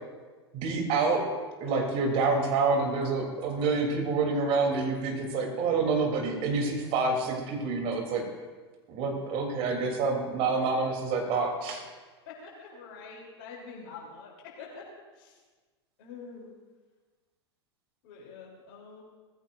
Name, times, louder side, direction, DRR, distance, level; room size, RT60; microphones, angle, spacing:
voice 1, 0.5-1.2 1.6-8.2 8.9-11.8, right 4 dB, 40° right, 1 dB, 3.4 m, -27 dB
voice 2, 12.3-14.8 15.2-15.4 16.0-16.6 18.0-19.0, left 5 dB, 50° left, -3 dB, 3.5 m, -46 dB
19.5 x 15.0 x 2.6 m, 1.4 s
figure-of-eight pair, 90°, 14 cm